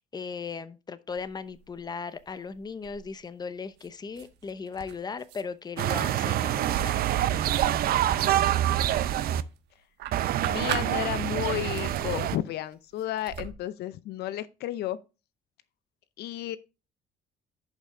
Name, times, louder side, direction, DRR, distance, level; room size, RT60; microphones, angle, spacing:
voice 1, 0.0-7.0, left 5 dB, 25° left, 0.8 m, -37 dB
sound 1, 1.1-1.9 2.2-3.3 3.8-5.4 5.8-9.6 10.0-11.4 11.6-13.5, right 9 dB, 80° right, 1.3 m, -40 dB
sound 2, 5.8-9.4 10.1-12.4, right 12 dB, 60° right, 0.6 m, -26 dB
voice 2, 10.2-15.0 16.2-16.6, left 13 dB, 75° left, 0.6 m, -32 dB
11.0 x 5.4 x 3.8 m
cardioid pair, 110°, 17 cm